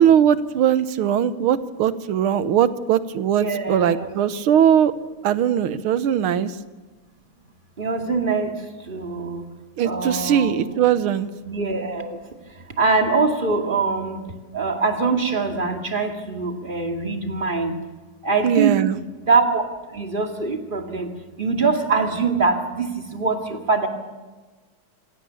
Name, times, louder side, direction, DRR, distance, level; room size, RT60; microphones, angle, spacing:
voice 1, 0.0-4.9 5.2-6.6 9.8-11.3 18.4-19.0, right 9 dB, 85° right, 13 dB, 1.8 m, -20 dB
voice 2, 3.4-4.1 7.8-8.5 8.9-9.4 9.8-10.6 11.4-12.2 12.8-14.2 14.5-17.7 18.2-18.9 19.2-19.6 19.9-21.1 21.4-23.9, right 4 dB, 25° right, 3 dB, 2.4 m, -23 dB
26.0 x 17.5 x 7.0 m, 1.3 s
omnidirectional pair, 2.3 m